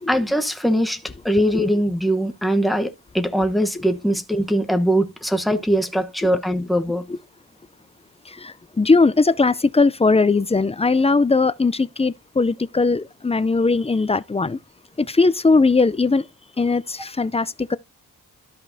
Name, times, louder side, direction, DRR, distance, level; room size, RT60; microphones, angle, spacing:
voice 1, 0.1-7.1, equal, ahead, 1.1 m, -21 dB
voice 2, 8.3-14.6 15.0-16.2 16.6-17.8, left 3 dB, 15° left, 0.5 m, -19 dB
13.0 x 5.1 x 2.8 m
cardioid pair, 85°, 41 cm